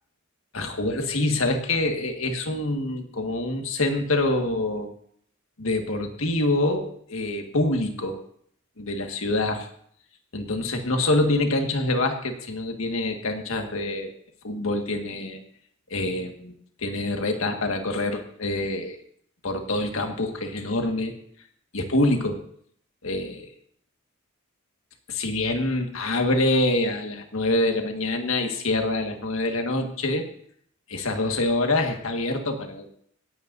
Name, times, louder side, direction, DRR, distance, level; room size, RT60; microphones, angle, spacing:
voice 1, 0.5-4.9 5.6-8.2 8.8-9.7 10.3-14.1 14.4-15.4 15.9-19.0 19.4-21.1 21.7-22.4 23.0-23.5 25.1-30.3 30.9-32.9, left 2 dB, 70° left, 4 dB, 1.7 m, -25 dB
26.0 x 8.9 x 2.7 m, 0.64 s
head